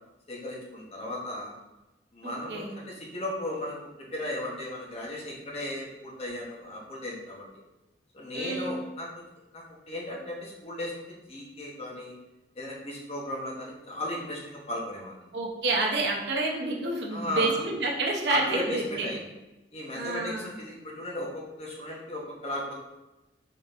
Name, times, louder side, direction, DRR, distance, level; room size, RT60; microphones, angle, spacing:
voice 1, 0.3-1.5 2.1-3.8 4.1-7.5 8.1-9.1 9.5-10.9 11.3-12.1 12.6-15.2 17.1-17.6 18.3-19.3 19.7-22.7, left 1 dB, 35° left, -3 dB, 0.8 m, -36 dB
voice 2, 2.2-2.7 8.3-8.7 15.3-19.1 19.9-20.5, right 2 dB, 65° right, -1 dB, 0.7 m, -29 dB
4.0 x 3.6 x 2.4 m, 1.0 s
head